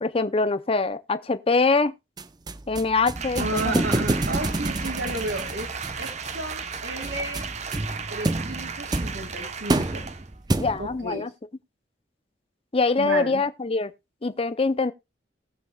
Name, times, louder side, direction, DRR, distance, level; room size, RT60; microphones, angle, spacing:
voice 1, 0.0-1.9 2.7-3.8 10.5-11.3 12.7-13.9 14.2-14.9, left 3 dB, 30° left, 0.6 m, -24 dB
sound 1, 2.2-11.1, right 2 dB, 20° right, 0.5 m, -29 dB
Applause, 3.2-10.3 10.7-10.8, right 6 dB, 40° right, 0.9 m, -35 dB
voice 2, 3.4-5.7 6.0-7.4 8.1-10.0 10.8-11.2 13.0-13.4, right 2 dB, 65° right, 2.4 m, -32 dB
19.5 x 7.5 x 2.3 m
head